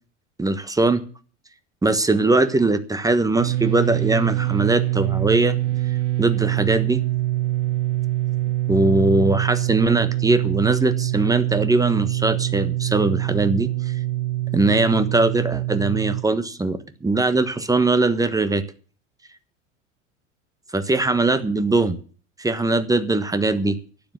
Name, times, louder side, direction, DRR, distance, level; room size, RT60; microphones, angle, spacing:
voice 1, 0.4-1.0 1.8-5.5 5.9-7.0 8.7-13.7 14.5-18.6 20.7-22.0 22.4-23.8, right 2 dB, 10° right, 12 dB, 1.3 m, -21 dB
sound 1, 3.4-16.2, right 16 dB, 70° right, 0.7 m, -24 dB
12.0 x 10.0 x 7.6 m, 0.40 s
figure-of-eight pair, 80°, 37 cm